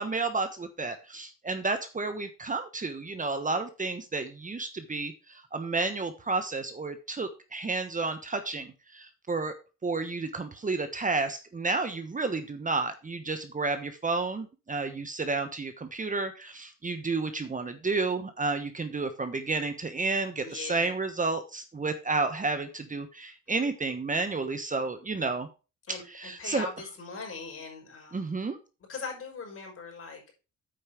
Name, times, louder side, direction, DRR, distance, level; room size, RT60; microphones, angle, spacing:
voice 1, 0.0-9.5 9.8-25.5 26.1-26.7 28.1-28.6, right 3 dB, 25° right, 9 dB, 1.1 m, -31 dB
voice 2, 20.4-20.9 25.9-28.3 28.9-30.3, left 4 dB, 45° left, 2 dB, 5.2 m, -40 dB
8.7 x 5.4 x 5.8 m, 0.31 s
cardioid pair, 90°, 30 cm